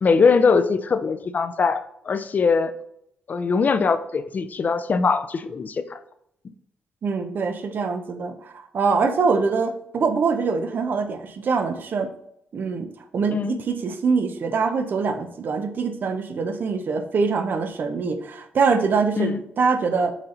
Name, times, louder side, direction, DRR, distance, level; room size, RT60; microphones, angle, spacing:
voice 1, 0.0-2.7 3.3-6.0 13.3-13.6 19.2-19.4, left 5 dB, 45° left, 11 dB, 0.5 m, -21 dB
voice 2, 7.0-12.1 12.5-20.1, right 4 dB, 60° right, 8 dB, 0.8 m, -24 dB
6.1 x 4.2 x 3.9 m, 0.75 s
cardioid pair, 70°, 4 cm